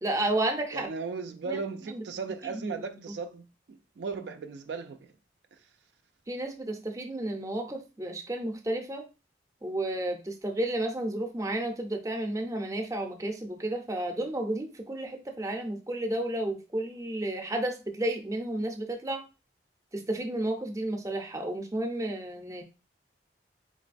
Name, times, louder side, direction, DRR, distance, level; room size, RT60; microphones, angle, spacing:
voice 1, 0.0-0.9 1.4-2.0 2.4-3.1 6.3-9.1 9.6-19.2 19.9-22.6, right 1 dB, 20° right, 0.5 m, -32 dB
voice 2, 0.7-5.1, right 4 dB, 75° right, 0.4 m, -37 dB
4.0 x 3.0 x 2.5 m
head